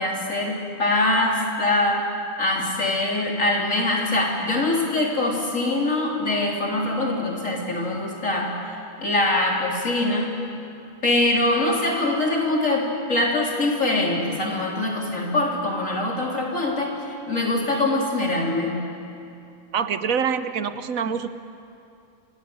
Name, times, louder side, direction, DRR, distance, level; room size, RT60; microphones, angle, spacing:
voice 1, 0.0-2.0 2.4-8.5 9.0-10.4 11.0-17.0 17.3-18.9, left 2 dB, 70° left, -1 dB, 4.0 m, -23 dB
voice 2, 19.7-21.3, right 7 dB, 80° right, 11 dB, 1.4 m, -25 dB
26.0 x 18.0 x 8.8 m, 2.6 s
omnidirectional pair, 1.4 m